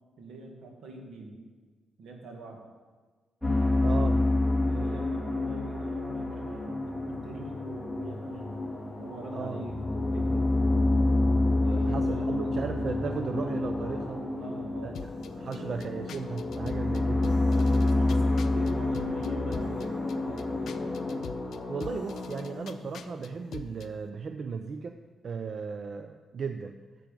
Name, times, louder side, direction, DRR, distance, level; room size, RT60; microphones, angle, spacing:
voice 1, 0.2-1.4 2.0-2.6 4.6-8.5 9.0-10.5 11.6-12.3 14.4-15.0 15.4-15.7 17.5-21.0, right 2 dB, 80° right, 2 dB, 2.0 m, -44 dB
sound 1, 3.4-21.2, left 2 dB, 5° right, 2.2 m, -28 dB
voice 2, 3.8-4.3 9.3-9.6 11.7-14.3 14.8-15.1 15.4-17.5 21.7-26.8, right 5 dB, 55° right, 8 dB, 0.5 m, -36 dB
sound 2, 6.2-24.3, left 2 dB, 20° left, 3.0 m, -39 dB
sound 3, 14.9-23.9, left 7 dB, 75° left, 0.5 m, -45 dB
10.5 x 7.7 x 5.3 m, 1.4 s
cardioid pair, 100°, 0 cm